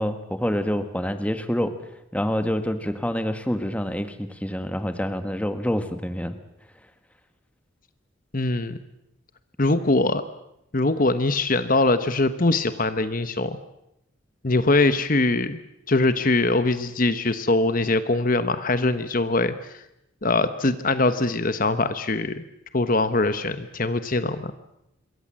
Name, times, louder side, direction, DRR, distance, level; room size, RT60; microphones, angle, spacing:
voice 1, 0.0-1.7 2.1-6.4, equal, 5° left, 8 dB, 1.4 m, -27 dB
voice 2, 8.3-8.8 9.6-10.2 10.7-13.6 14.4-15.6 15.9-19.5 20.2-22.4 22.7-24.5, left 2 dB, 40° left, 11 dB, 1.1 m, -22 dB
26.5 x 23.0 x 7.5 m, 0.83 s
head